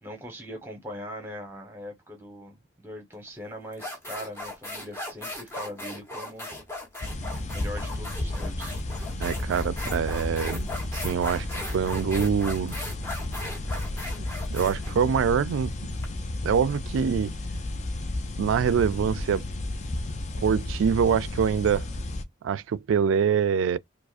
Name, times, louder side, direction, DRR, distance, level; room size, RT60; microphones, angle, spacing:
voice 1, 0.0-6.5 7.4-8.8, equal, 10° right, 1.1 m, -41 dB
sound 1, 3.1-3.3 3.7-16.1, left 1 dB, 15° left, 1.0 m, -38 dB
sound 2, 7.0-22.2, left 2 dB, 35° left, 0.4 m, -33 dB
voice 2, 9.2-12.9 14.5-15.7 16.4-17.3 18.4-19.5 20.4-21.9 22.4-23.8, right 7 dB, 90° right, 0.3 m, -25 dB
4.7 x 2.0 x 2.5 m
head